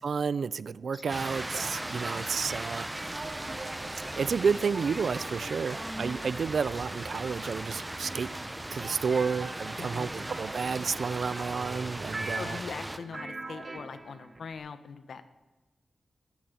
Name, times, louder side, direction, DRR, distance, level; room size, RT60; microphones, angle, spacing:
voice 1, 0.0-3.2 4.0-8.3 8.7-12.6, right 5 dB, 65° right, 0.4 m, -31 dB
sound 1, 0.9-12.5, left 1 dB, 15° left, 1.2 m, -56 dB
sound 2, 1.1-13.0, right 1 dB, 10° right, 0.7 m, -38 dB
sound 3, 1.1-14.5, right 2 dB, 30° right, 1.4 m, -43 dB
voice 2, 9.8-10.4 12.3-15.2, left 5 dB, 75° left, 1.1 m, -42 dB
13.5 x 10.5 x 9.2 m
wide cardioid pair, 175°, 0 cm